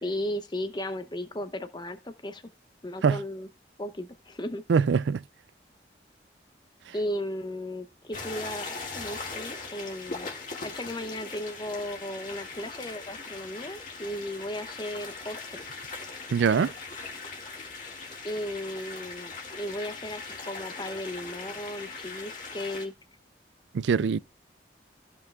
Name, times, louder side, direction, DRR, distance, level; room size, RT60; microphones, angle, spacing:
voice 1, 0.0-2.4 2.8-3.5 3.8-4.6 6.9-10.3 10.6-15.6 18.2-22.9, left 1 dB, 25° left, 0.8 m, -35 dB
voice 2, 4.7-5.2 16.3-16.7 23.7-24.2, right 6 dB, 90° right, 0.4 m, -23 dB
sound 1, 8.1-22.9, left 4 dB, 50° left, 2.0 m, -40 dB
15.0 x 5.5 x 2.4 m
head